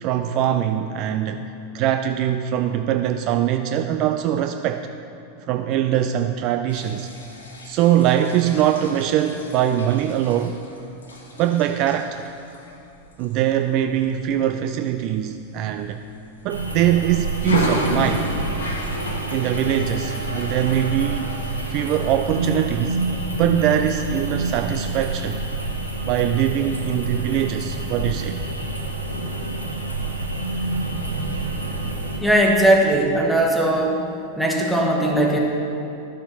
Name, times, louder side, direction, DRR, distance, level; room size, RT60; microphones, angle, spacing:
voice 1, 0.0-1.4 1.7-4.9 5.5-7.1 7.6-10.6 11.4-12.3 13.2-16.0 16.4-18.3 19.3-21.3 21.7-23.0 23.4-25.4 26.1-28.4, right 11 dB, 40° right, 7 dB, 0.3 m, -22 dB
sound 1, 6.7-14.5 15.0-15.3 15.6-16.8 17.3-22.1, left 1 dB, 70° left, 1.3 m, -32 dB
sound 2, 16.5-32.2, right 2 dB, 90° left, 1.3 m, -28 dB
voice 2, 32.2-34.0 34.4-35.4, right 1 dB, ahead, -2 dB, 1.5 m, -18 dB
12.5 x 7.0 x 4.1 m, 2.7 s
figure-of-eight pair, 90°, 0 cm